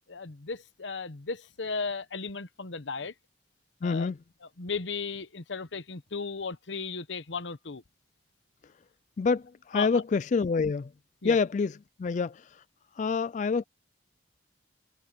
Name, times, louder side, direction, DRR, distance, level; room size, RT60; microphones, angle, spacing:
voice 1, 0.1-3.1 3.8-4.1 4.6-7.8 9.7-10.0 11.2-11.4, left 4 dB, 90° left, 1.1 m, -35 dB
voice 2, 3.8-4.2 9.2-10.9 11.2-12.6 13.0-13.6, left 4 dB, 40° left, 0.3 m, -27 dB
head